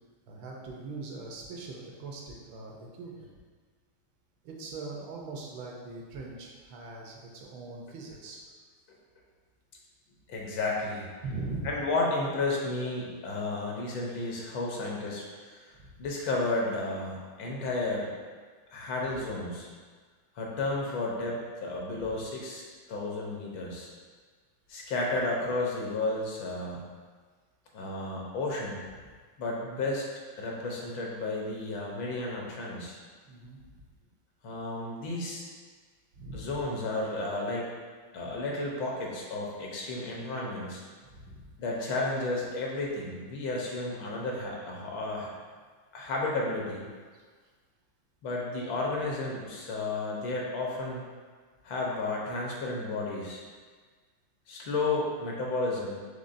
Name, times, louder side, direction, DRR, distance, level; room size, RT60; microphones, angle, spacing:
voice 1, 0.3-3.3 4.4-8.4 11.2-11.7 19.0-19.3 21.9-22.1 33.3-33.6 36.2-36.5 41.1-41.4, right 3 dB, 80° right, -1 dB, 1.4 m, -41 dB
voice 2, 10.3-11.1 11.6-15.7 16.0-18.1 18.7-19.7 20.4-22.6 22.9-23.9 24.7-26.8 27.7-28.8 29.4-30.1 30.4-33.0 34.4-35.4 36.3-37.7 38.1-40.8 41.6-45.3 45.9-46.8 48.2-51.1 51.6-53.4 54.5-56.0, left 2 dB, 75° left, -2 dB, 1.5 m, -32 dB
5.2 x 3.6 x 2.5 m, 1.5 s
omnidirectional pair, 2.1 m